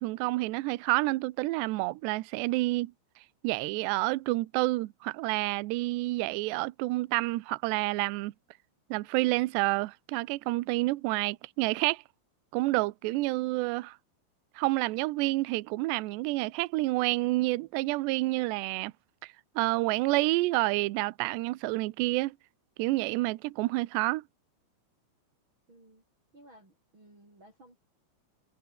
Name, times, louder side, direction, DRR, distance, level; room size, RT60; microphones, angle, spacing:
voice 1, 0.0-2.9 3.4-8.3 8.9-12.0 12.5-14.0 14.6-18.9 19.2-22.4 22.8-24.2, right 21 dB, 80° right, 2.5 m, -29 dB
voice 2, 25.7-26.0 26.3-27.8, right 1 dB, 20° right, 8.1 m, -56 dB
omnidirectional pair, 5.9 m